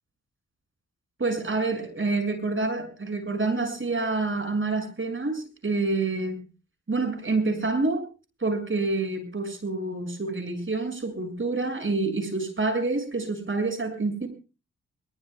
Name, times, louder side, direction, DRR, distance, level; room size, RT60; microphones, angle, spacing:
voice 1, 1.2-6.4 6.9-8.0 8.4-14.3, right 3 dB, 40° right, 6 dB, 6.7 m, -27 dB
22.5 x 22.0 x 2.3 m, 0.33 s
cardioid pair, 65°, 31 cm